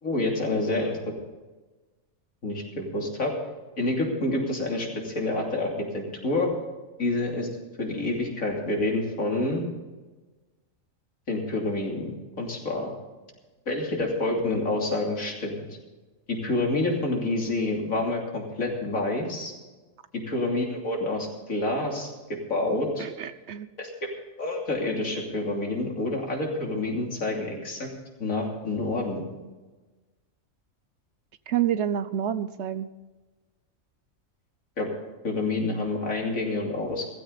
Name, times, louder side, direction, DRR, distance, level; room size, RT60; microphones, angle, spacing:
voice 1, 0.0-1.0 2.4-3.3 3.8-6.5 7.0-7.5 7.8-9.6 11.3-12.9 13.7-15.7 16.3-19.5 20.1-23.1 23.8-24.1 24.4-27.9 28.2-29.2 34.8-34.9 35.2-37.1, left 2 dB, 80° left, 0 dB, 3.4 m, -28 dB
voice 2, 23.0-23.7 31.5-32.9, right 10 dB, 65° right, 14 dB, 0.9 m, -28 dB
16.5 x 15.0 x 4.0 m, 1.2 s
omnidirectional pair, 1.4 m